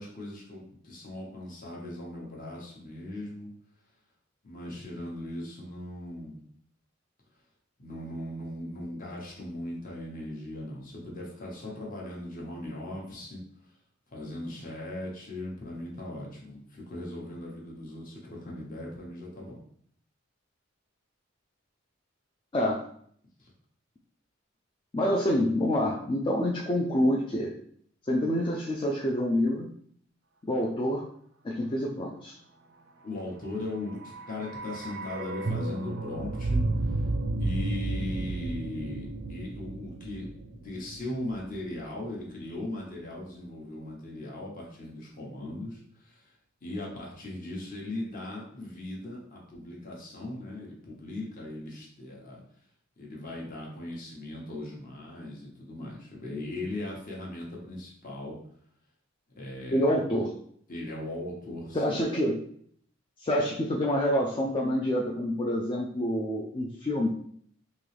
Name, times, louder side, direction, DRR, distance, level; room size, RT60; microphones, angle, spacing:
voice 1, 0.0-3.5 4.4-6.4 7.8-13.4 14.1-19.6 23.4-23.5 33.0-37.0 37.4-40.3 40.5-46.2 46.6-52.4 53.0-58.4 59.4-59.9 60.7-62.0, left 1 dB, 45° left, -3 dB, 1.1 m, -38 dB
voice 2, 24.9-27.5 28.1-29.7 30.4-31.0 31.4-32.3 59.7-60.3 61.7-62.4 63.2-67.1, equal, 25° left, -2 dB, 0.4 m, -27 dB
sound 1, 33.8-41.9 42.1-42.2, right 2 dB, 60° right, 0.5 m, -33 dB
3.8 x 2.9 x 3.2 m, 0.63 s
head